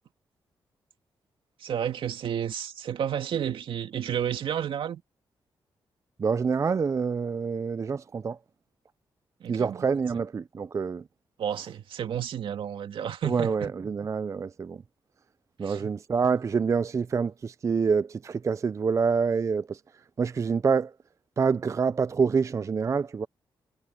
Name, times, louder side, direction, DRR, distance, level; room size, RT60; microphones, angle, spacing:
voice 1, 1.6-5.0 9.4-9.8 10.1-10.2 11.4-13.5 15.6-15.9, right 9 dB, 80° right, 2.4 m, -31 dB
voice 2, 6.2-8.4 9.5-11.0 13.2-14.8 15.6-19.8 20.2-20.9 21.4-23.3, right 5 dB, 35° right, 0.4 m, -26 dB
cardioid pair, 95°, 9 cm